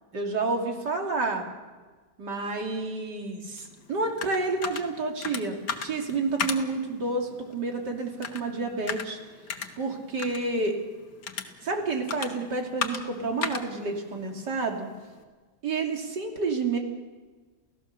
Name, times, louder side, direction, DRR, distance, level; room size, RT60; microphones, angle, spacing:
voice 1, 0.1-1.4 2.2-9.2 9.8-10.8 11.6-14.9 15.6-16.8, right 3 dB, 85° right, 2 dB, 3.4 m, -29 dB
sound 1, 3.6-15.2, left 6 dB, 75° left, 1.9 m, -38 dB
29.0 x 16.0 x 6.8 m, 1.4 s
omnidirectional pair, 1.8 m